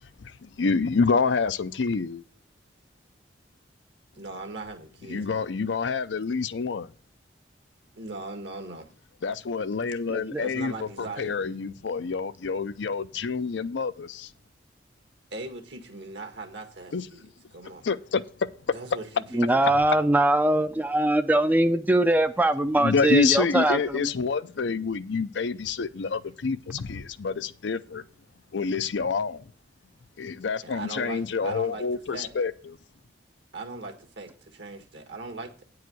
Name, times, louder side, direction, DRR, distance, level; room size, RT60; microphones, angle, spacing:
voice 1, 0.2-2.2 5.1-6.9 9.2-10.9 11.2-14.3 16.9-17.0 17.8-18.2 22.8-28.0 28.5-29.4 30.2-32.8, left 4 dB, 80° left, 0.5 m, -27 dB
voice 2, 4.1-5.5 7.9-8.9 10.4-11.4 15.3-17.9 18.7-19.7 30.6-32.3 33.5-35.6, right 3 dB, 70° right, 1.8 m, -39 dB
voice 3, 10.1-10.4 19.3-24.1, right 1 dB, 10° right, 0.4 m, -22 dB
9.3 x 4.8 x 7.7 m
head